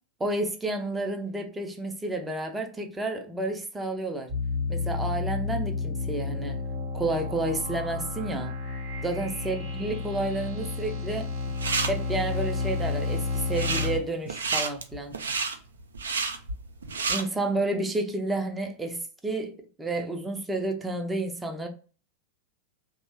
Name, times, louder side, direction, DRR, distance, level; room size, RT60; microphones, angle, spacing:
voice 1, 0.2-4.3 4.7-6.6 6.9-8.5 9.0-11.3 11.9-15.2 17.1-19.5 19.8-21.7, right 2 dB, 10° right, 0.5 m, -30 dB
sound 1, 4.3-14.0, left 4 dB, 40° right, 0.8 m, -31 dB
sound 2, 11.3-11.9 13.4-13.9 14.3-17.2, right 4 dB, 70° right, 0.4 m, -29 dB
2.9 x 2.0 x 2.9 m
figure-of-eight pair, 90°, 0 cm